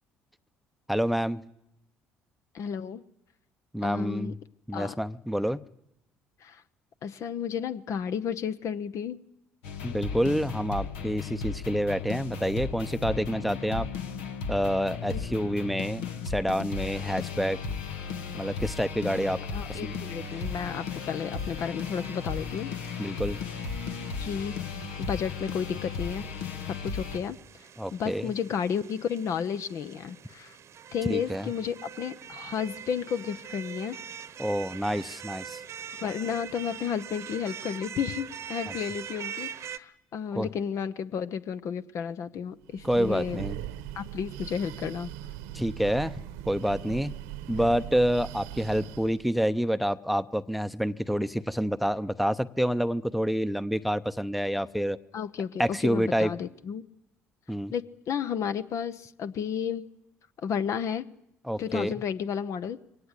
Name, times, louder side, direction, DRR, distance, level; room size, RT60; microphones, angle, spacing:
voice 1, 0.9-1.4 3.7-4.4 4.7-5.6 9.8-13.9 14.5-17.6 18.3-19.4 19.7-20.0 23.0-23.4 27.8-28.3 31.1-31.5 34.4-35.6 38.7-38.8 40.3-40.5 42.8-43.6 45.5-46.1 46.5-47.1 47.5-55.0 55.6-56.3 57.5-57.7 61.5-61.9, equal, ahead, 15 dB, 0.8 m, -28 dB
voice 2, 2.5-3.0 3.8-4.3 4.7-5.0 6.4-6.6 7.0-9.2 15.1-15.2 19.5-22.7 23.0-23.1 24.2-24.6 25.0-26.3 26.8-30.6 30.9-34.0 36.0-43.4 43.9-45.1 55.1-56.8 57.7-59.9 60.4-61.1 61.6-62.8, left 7 dB, 55° left, 12 dB, 0.9 m, -32 dB
sound 1, 9.6-27.2, left 5 dB, 75° left, 1.6 m, -35 dB
sound 2, 20.2-39.8, right 9 dB, 50° right, 1.0 m, -44 dB
Breathing, 42.6-49.3, right 12 dB, 80° right, 1.2 m, -40 dB
23.0 x 17.5 x 8.2 m, 0.84 s
hypercardioid pair, 55°, 6 cm